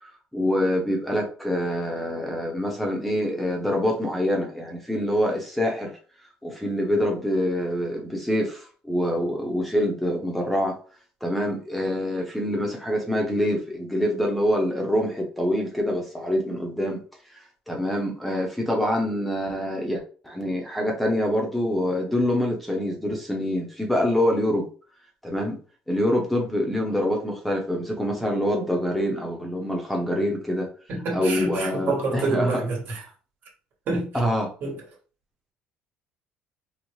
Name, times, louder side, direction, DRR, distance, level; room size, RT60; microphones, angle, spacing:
voice 1, 0.0-5.9 6.4-10.8 11.2-17.0 17.7-24.7 25.2-25.6 25.9-30.7 31.1-32.6 34.1-34.5, equal, ahead, 0.7 m, -25 dB
voice 2, 30.9-33.0 33.9-34.1 34.6-34.8, right 3 dB, 55° right, 1.3 m, -27 dB
4.0 x 2.1 x 3.1 m
cardioid pair, 120°, 4 cm